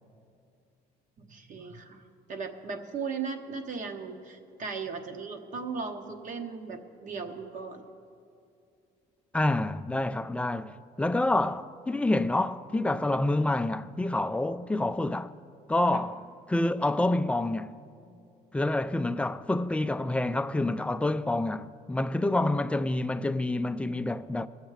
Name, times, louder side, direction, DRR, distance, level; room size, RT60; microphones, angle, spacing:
voice 1, 1.2-2.0 2.3-7.9 15.9-16.0, right 5 dB, 50° right, 1.2 m, -37 dB
voice 2, 9.3-15.3 15.7-16.2 16.5-17.7 18.5-24.5, left 2 dB, 5° left, 0.3 m, -27 dB
21.0 x 7.2 x 4.8 m
cardioid pair, 110°, 17 cm